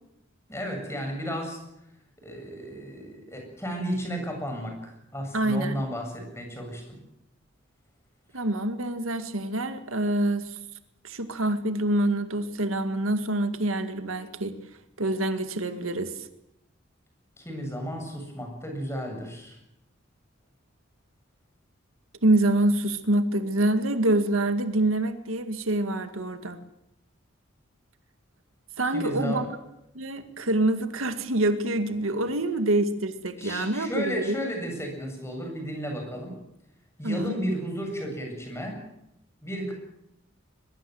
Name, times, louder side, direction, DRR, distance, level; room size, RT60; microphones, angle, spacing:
voice 1, 0.5-1.6 2.2-7.0 17.4-19.6 28.9-29.5 33.4-36.3 37.0-38.8 39.4-39.7, equal, 15° left, 3 dB, 7.5 m, -33 dB
voice 2, 5.3-5.8 8.3-10.6 11.0-14.6 15.0-16.3 22.2-26.6 28.8-29.4 30.0-34.4 37.0-37.4, right 1 dB, 85° right, 9 dB, 2.1 m, -26 dB
22.5 x 22.0 x 7.9 m, 0.83 s
head